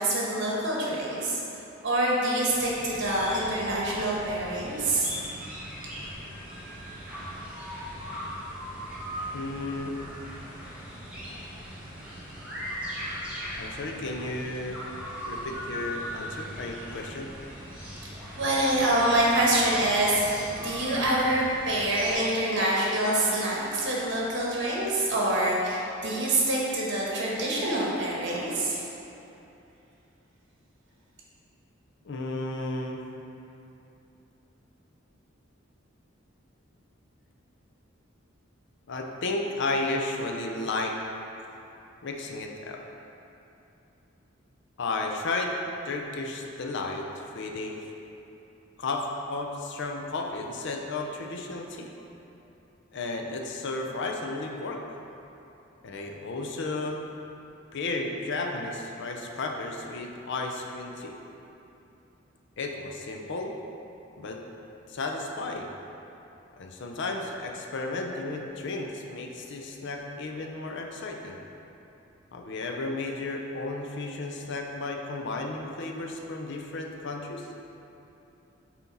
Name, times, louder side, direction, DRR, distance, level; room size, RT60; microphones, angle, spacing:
voice 1, 0.0-1.4 1.8-5.1 18.4-28.8, right 1 dB, 65° right, -4 dB, 1.3 m, -26 dB
sound 1, 2.5-22.1, equal, 5° right, 1.1 m, -39 dB
voice 2, 9.3-9.9 13.6-14.8 15.3-17.3 32.0-33.0 38.9-40.9 42.0-42.8 44.8-45.5 45.8-47.8 48.8-51.9 52.9-54.8 55.8-57.0 57.7-61.2 62.6-63.5 64.2-64.4 64.9-65.7 66.6-71.4 72.3-77.5, left 2 dB, 65° left, 2 dB, 0.6 m, -33 dB
5.8 x 4.4 x 4.0 m, 2.9 s
head